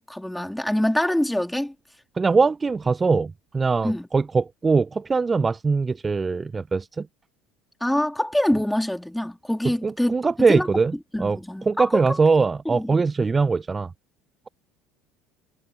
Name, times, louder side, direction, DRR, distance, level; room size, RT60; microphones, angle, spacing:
voice 1, 0.1-1.7 3.8-4.1 7.8-10.7 11.1-12.0 12.7-13.0, left 1 dB, 5° left, 3.6 m, -25 dB
voice 2, 2.2-7.1 9.6-10.9 11.2-11.4 11.7-13.9, right 4 dB, 20° right, 0.8 m, -22 dB
figure-of-eight pair, 65°, 0 cm